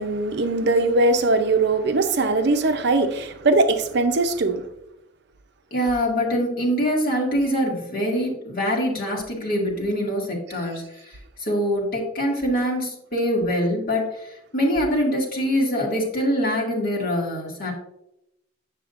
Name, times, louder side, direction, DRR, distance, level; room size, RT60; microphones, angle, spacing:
voice 1, 0.0-4.6, right 2 dB, 65° right, 0.6 m, -20 dB
voice 2, 5.7-17.7, equal, 50° left, 2.0 m, -24 dB
7.5 x 6.9 x 2.5 m
head